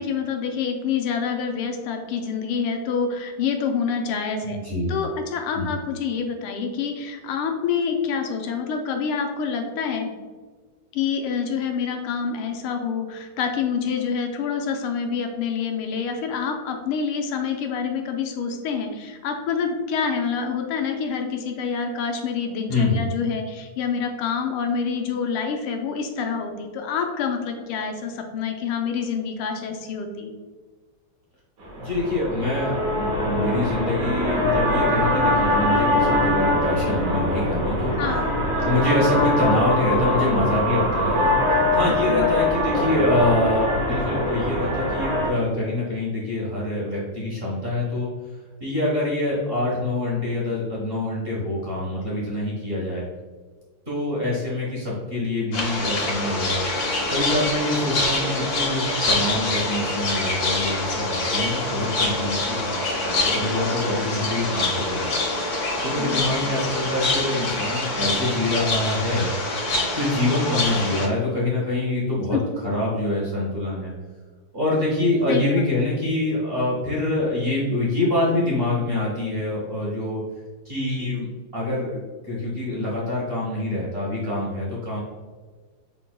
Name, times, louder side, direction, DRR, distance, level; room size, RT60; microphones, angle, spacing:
voice 1, 0.0-4.6 4.9-10.1 10.9-30.3 37.9-38.3 41.9-42.4 66.0-66.5 72.3-72.4 75.3-75.4, left 6 dB, 85° left, 4 dB, 1.5 m, -27 dB
voice 2, 4.4-5.0 5.5-5.7 22.7-23.0 31.8-38.0 38.6-48.1 48.6-53.0 53.9-56.6 57.1-65.1 65.8-69.3 69.9-73.9 74.5-80.2 80.6-81.3 81.5-85.0, left 1 dB, 35° right, -6 dB, 1.0 m, -25 dB
sound 1, 31.6-45.3, left 1 dB, 60° right, 1.1 m, -23 dB
sound 2, 55.5-71.1, left 2 dB, 65° left, 1.8 m, -25 dB
5.9 x 3.8 x 2.2 m, 1.4 s
omnidirectional pair, 2.3 m